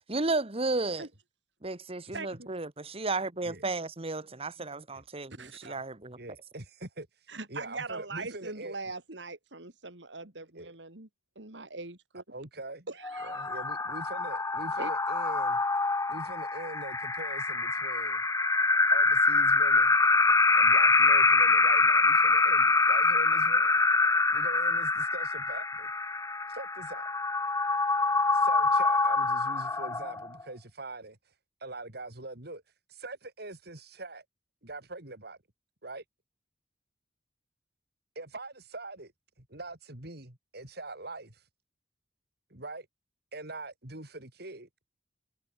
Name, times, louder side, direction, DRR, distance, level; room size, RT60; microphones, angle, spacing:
voice 1, 0.1-1.1 1.6-6.2, right 3 dB, 35° right, 1.8 m, -33 dB
voice 2, 2.1-2.5 5.4-5.6 7.3-11.1 11.4-12.2 12.9-13.5 14.8-14.9, right 3 dB, 80° right, 3.9 m, -41 dB
voice 3, 4.6-5.0 5.6-5.8 6.2-7.1 7.5-8.8 10.5-10.7 12.3-12.9 13.2-15.6 16.1-18.2 18.9-20.0 20.5-23.8 24.3-25.9 26.5-27.1 28.3-31.2 31.6-32.6 32.9-34.2 34.6-35.4 35.8-36.0 38.1-39.1 39.4-41.4 42.5-42.9 43.3-44.7, right 2 dB, 60° right, 4.5 m, -43 dB
sound 1, 13.0-30.4, left 3 dB, 20° left, 1.7 m, -25 dB
head